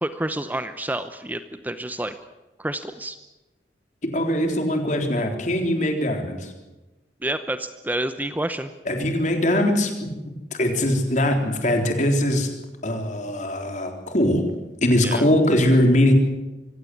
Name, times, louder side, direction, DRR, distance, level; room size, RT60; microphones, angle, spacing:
voice 1, 0.0-2.1 2.6-3.2 7.2-8.7 15.0-15.3, right 1 dB, 10° right, 10 dB, 0.7 m, -29 dB
voice 2, 4.1-6.5 8.9-12.5 12.8-14.4 14.8-16.1, left 1 dB, 45° left, 4 dB, 3.8 m, -21 dB
24.5 x 16.5 x 9.8 m, 1.1 s
head